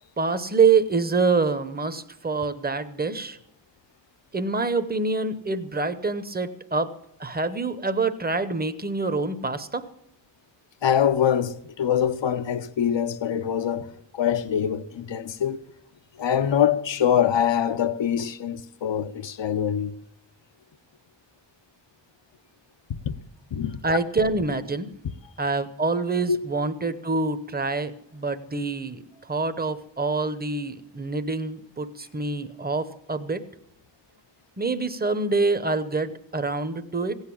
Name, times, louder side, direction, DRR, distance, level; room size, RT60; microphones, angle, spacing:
voice 1, 0.2-3.4 4.3-6.9 7.2-9.9 23.8-24.9 25.4-33.4 34.6-37.2, right 4 dB, 20° right, 0.8 m, -26 dB
voice 2, 10.8-15.6 16.2-19.9 23.1-23.2 23.5-23.8 26.3-26.4, left 9 dB, 75° left, 0.8 m, -24 dB
16.5 x 8.1 x 8.5 m
wide cardioid pair, 105°, 44 cm